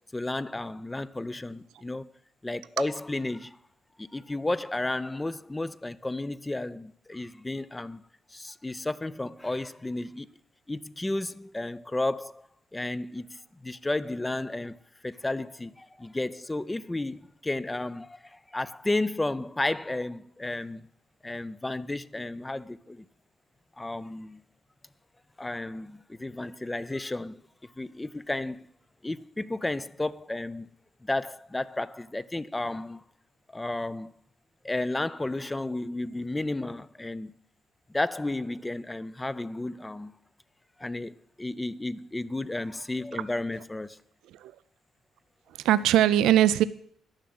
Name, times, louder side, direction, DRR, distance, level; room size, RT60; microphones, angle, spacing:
voice 1, 0.1-2.1 2.4-3.6 4.0-8.0 8.3-10.3 10.7-12.5 12.7-20.9 21.2-23.1 23.8-24.4 25.4-28.7 29.0-30.7 31.0-33.0 33.5-34.2 34.6-37.4 37.9-40.1 40.8-44.0, left 2 dB, 15° left, 0.4 m, -33 dB
voice 2, 45.5-46.6, right 12 dB, 85° right, 0.4 m, -21 dB
10.5 x 6.2 x 7.7 m
cardioid pair, 90°, 0 cm